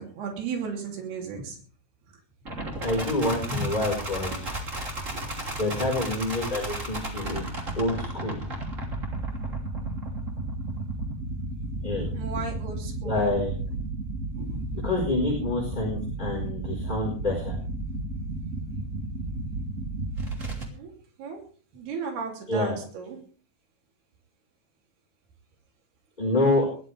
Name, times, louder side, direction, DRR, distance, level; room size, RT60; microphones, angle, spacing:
voice 1, 0.0-1.6 3.3-3.7 5.1-5.8 11.9-13.3 14.4-14.6 20.7-20.9 21.2-21.4 21.7-23.2, right 4 dB, 85° right, 2 dB, 5.0 m, -35 dB
sound 1, 2.5-20.7, right 2 dB, 20° right, 2.8 m, -33 dB
voice 2, 2.8-4.5 5.6-7.5 7.7-8.4 11.8-12.1 13.0-13.5 14.8-17.6 22.5-22.7 26.2-26.6, left 2 dB, 10° left, -3 dB, 4.2 m, -27 dB
21.5 x 13.5 x 3.4 m, 0.42 s
omnidirectional pair, 4.5 m